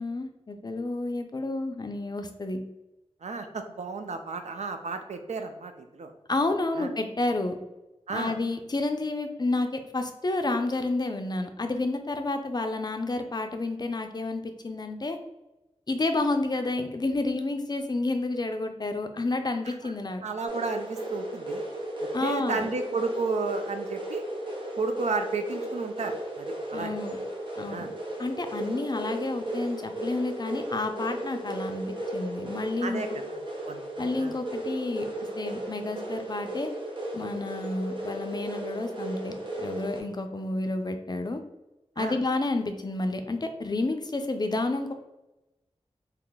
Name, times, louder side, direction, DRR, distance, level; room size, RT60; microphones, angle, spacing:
voice 1, 0.0-2.6 6.3-7.6 8.1-15.2 15.9-20.2 22.1-22.7 26.7-27.2 27.6-27.9 28.2-33.0 34.0-35.1 35.4-36.7 37.1-41.4 42.0-44.9, left 2 dB, 40° left, 6 dB, 0.4 m, -30 dB
voice 2, 3.2-6.1 6.8-6.9 8.1-8.4 19.7-19.9 20.2-21.6 22.2-24.2 24.8-27.0 27.7-27.9 32.8-33.9 34.2-34.3 42.0-42.2, right 4 dB, 85° right, 7 dB, 0.4 m, -33 dB
sound 1, 20.5-40.0, right 1 dB, 45° right, 0.8 m, -35 dB
2.8 x 2.2 x 3.9 m, 0.99 s
wide cardioid pair, 65°, 11 cm